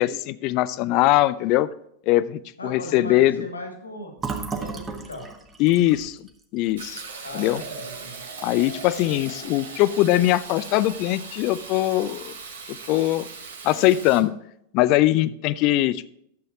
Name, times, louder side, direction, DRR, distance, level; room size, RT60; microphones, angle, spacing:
voice 1, 0.0-1.7 2.1-3.4 5.6-6.2 6.5-7.0 7.3-7.6 8.4-12.3 12.7-13.3 13.6-14.3 14.7-16.1, left 15 dB, 40° left, 17 dB, 0.5 m, -21 dB
voice 2, 2.6-4.1 4.5-5.3 7.2-8.2, left 1 dB, 80° left, 3 dB, 2.4 m, -37 dB
Fill (with liquid), 4.2-7.8 8.2-8.3 8.6-9.3, right 4 dB, 20° right, 1.4 m, -35 dB
Fill (with liquid) 2, 6.8-14.2, right 4 dB, 65° right, 1.4 m, -39 dB
12.0 x 7.8 x 2.9 m, 0.72 s
figure-of-eight pair, 90°, 0 cm